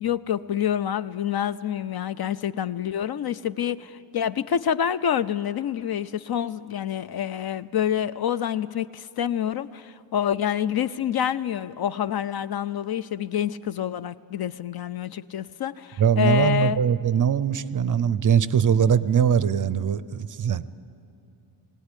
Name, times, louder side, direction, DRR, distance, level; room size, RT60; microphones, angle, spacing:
voice 1, 0.0-16.8, left 9 dB, 50° left, 15 dB, 0.5 m, -27 dB
voice 2, 16.0-20.6, right 8 dB, 40° right, 16 dB, 0.5 m, -21 dB
22.0 x 18.0 x 9.9 m, 2.6 s
wide cardioid pair, 170°, 50 cm